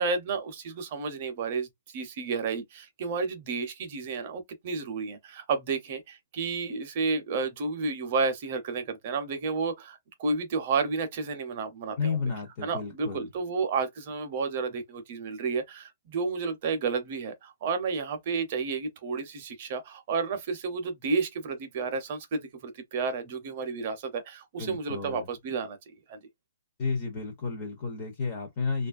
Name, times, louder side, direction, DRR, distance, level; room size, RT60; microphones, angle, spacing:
voice 1, 0.0-1.7 1.9-12.2 12.6-25.8 26.1-26.2, right 4 dB, 30° right, 0.5 m, -31 dB
voice 2, 12.0-13.3 24.6-25.3 26.8-28.9, left 4 dB, 25° left, 0.5 m, -32 dB
2.9 x 2.3 x 2.4 m
hypercardioid pair, 180°, 0 cm